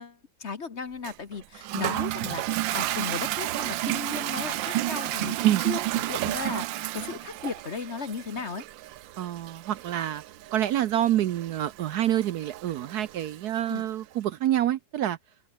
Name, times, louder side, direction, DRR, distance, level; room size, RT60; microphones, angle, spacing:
voice 1, 0.0-8.6 13.7-13.9, left 5 dB, 40° left, 1.3 m, -36 dB
Toilet flush, 1.0-13.8, right 15 dB, 80° right, 1.4 m, -32 dB
voice 2, 9.2-10.2 10.5-15.2, right 12 dB, 65° right, 1.1 m, -27 dB
omnidirectional pair, 2.0 m